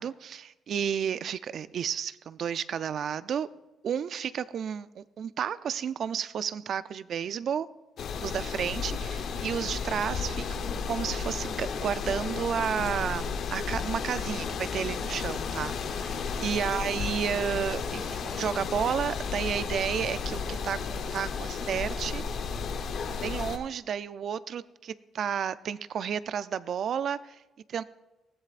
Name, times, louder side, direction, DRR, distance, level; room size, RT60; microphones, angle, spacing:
voice 1, 0.0-3.5 3.8-7.7 8.2-22.2 23.1-27.4 27.7-27.8, right 8 dB, 60° right, 16 dB, 0.4 m, -32 dB
sound 1, 8.0-23.6, left 5 dB, 70° left, 0.9 m, -33 dB
19.5 x 14.5 x 2.5 m, 1.1 s
cardioid pair, 90°, 0 cm